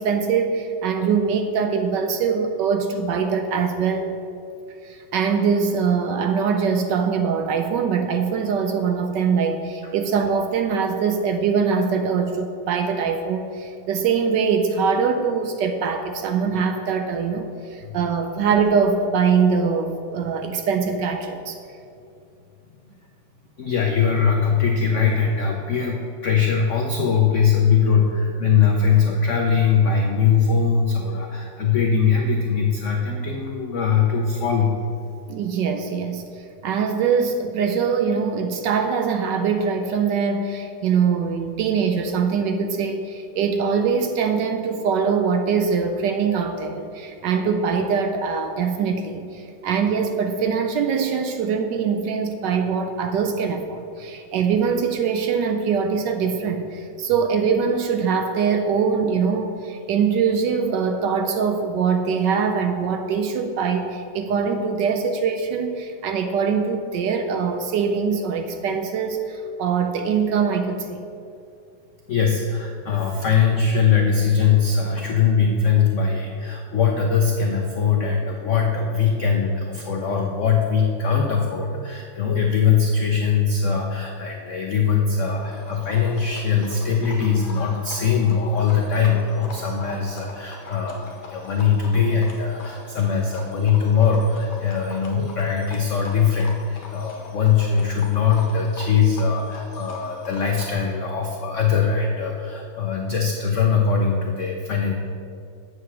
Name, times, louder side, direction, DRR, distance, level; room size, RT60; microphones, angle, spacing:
voice 1, 0.0-4.1 4.8-21.6 35.3-36.2 36.6-71.0, right 6 dB, 75° right, 6 dB, 1.1 m, -23 dB
voice 2, 23.6-34.7 72.1-104.9, left 6 dB, 85° left, 1 dB, 0.6 m, -21 dB
Livestock farm animals working animals, 85.2-100.7, left 3 dB, 60° left, 1.6 m, -42 dB
7.9 x 4.8 x 7.1 m, 2.5 s
omnidirectional pair, 2.2 m